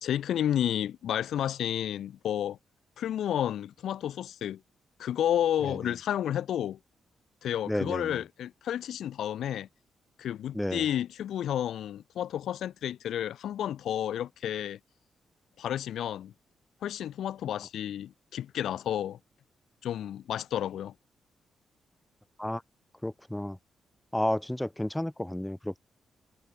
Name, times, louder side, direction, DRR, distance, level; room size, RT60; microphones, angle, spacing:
voice 1, 0.0-2.6 3.0-4.6 5.0-6.8 7.4-9.7 10.2-14.8 15.6-16.3 16.8-19.2 19.8-20.9, left 10 dB, 80° left, 1.3 m, -31 dB
voice 2, 7.7-8.2 10.5-10.8 22.4-22.6 23.0-23.6 24.1-25.8, left 1 dB, 5° left, 0.9 m, -31 dB
cardioid pair, 120°, 0 cm